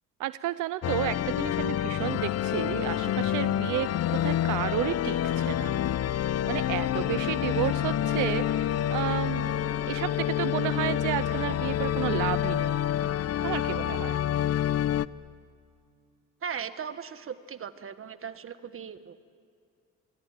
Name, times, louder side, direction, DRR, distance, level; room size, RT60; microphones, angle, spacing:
voice 1, 0.2-5.8 6.0-9.5 9.9-12.8 13.4-14.2, right 15 dB, 85° right, 15 dB, 0.6 m, -32 dB
sound 1, 0.8-15.1, left 11 dB, 55° left, 0.6 m, -28 dB
voice 2, 16.4-19.2, right 7 dB, 45° right, 11 dB, 1.5 m, -38 dB
27.0 x 22.5 x 9.0 m, 2.3 s
cardioid pair, 90°, 30 cm